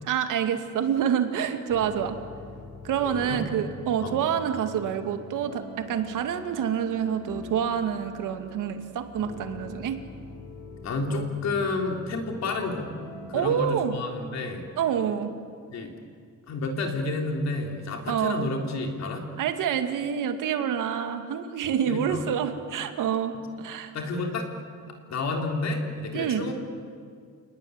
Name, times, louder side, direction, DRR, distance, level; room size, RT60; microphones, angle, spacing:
voice 1, 0.0-2.2 2.8-10.0 13.3-13.9 14.8-15.3 18.1-18.5 19.4-23.9 26.1-26.5, right 8 dB, 85° right, 7 dB, 2.4 m, -27 dB
sound 1, 1.7-13.5, left 3 dB, 75° left, 4.8 m, -44 dB
voice 2, 3.0-3.4 4.0-4.2 10.8-12.9 13.3-14.6 15.7-15.9 16.5-19.3 21.6-22.2 23.9-24.5 24.9-26.5, left 3 dB, 60° left, 3 dB, 3.6 m, -30 dB
29.5 x 19.0 x 9.8 m, 2.2 s
cardioid pair, 160°, 31 cm